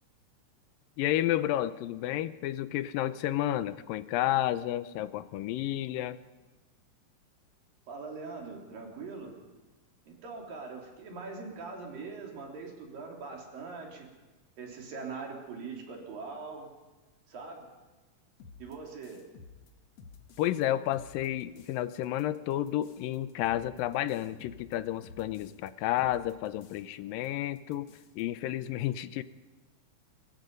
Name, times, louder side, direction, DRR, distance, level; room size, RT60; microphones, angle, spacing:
voice 1, 1.0-6.2 20.4-27.9 28.2-29.2, left 13 dB, 85° left, 14 dB, 2.5 m, -31 dB
voice 2, 7.9-9.4 10.1-14.1 14.6-16.7 17.3-17.7 18.6-19.2, right 4 dB, 80° right, 0 dB, 5.0 m, -42 dB
sound 1, 18.4-20.6 20.9-21.8 22.0-25.7 26.0-27.0 27.2-27.3 27.6-28.2, left 5 dB, 55° left, 2.3 m, -53 dB
23.0 x 21.5 x 5.4 m, 1.2 s
omnidirectional pair, 3.9 m